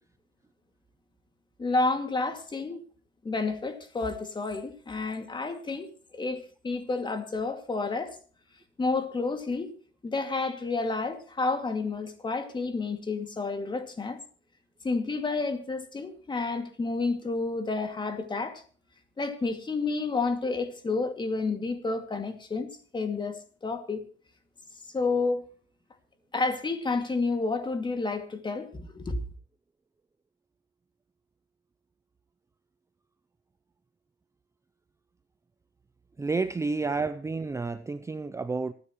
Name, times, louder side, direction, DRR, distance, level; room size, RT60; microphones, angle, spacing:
voice 1, 1.6-2.8 3.2-8.2 8.8-9.7 10.0-14.2 14.8-18.6 19.2-24.0 24.9-25.4 26.3-29.2, left 3 dB, 25° left, 2.3 m, -30 dB
voice 2, 36.2-38.7, right 4 dB, 15° right, 0.5 m, -30 dB
26.0 x 9.8 x 3.1 m
cardioid pair, 130°, 20 cm